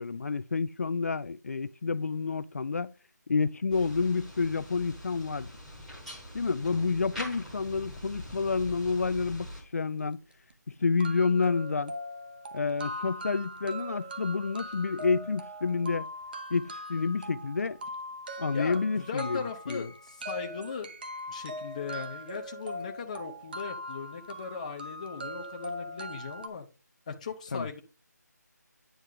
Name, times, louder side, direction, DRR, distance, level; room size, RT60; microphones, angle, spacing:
voice 1, 0.0-2.9 3.3-5.5 6.3-10.2 10.8-11.9 12.5-16.1 16.5-17.8 18.4-19.9 27.5-27.7, left 4 dB, 55° left, 0.4 m, -29 dB
sound 1, 3.7-9.6, equal, 5° right, 1.1 m, -43 dB
sound 2, 10.0-10.1 10.5-10.6 11.0-26.5, equal, 30° right, 0.8 m, -41 dB
voice 2, 18.5-20.9 21.3-26.7 27.1-27.8, left 5 dB, 25° left, 0.7 m, -38 dB
9.3 x 4.5 x 3.8 m
figure-of-eight pair, 165°, 10 cm